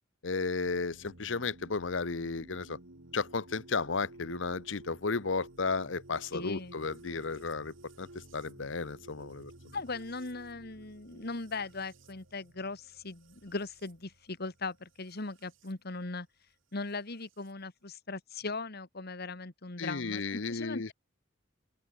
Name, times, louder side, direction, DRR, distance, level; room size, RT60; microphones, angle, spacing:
voice 1, 0.2-2.8 3.1-9.5 19.8-20.9, left 4 dB, 70° left, 1.0 m, -34 dB
sound 1, 0.6-15.7 16.9-17.5, right 2 dB, 80° right, 2.4 m, -54 dB
voice 2, 6.3-6.8 9.7-16.3 16.7-20.9, left 3 dB, 55° left, 1.9 m, -39 dB
open air
head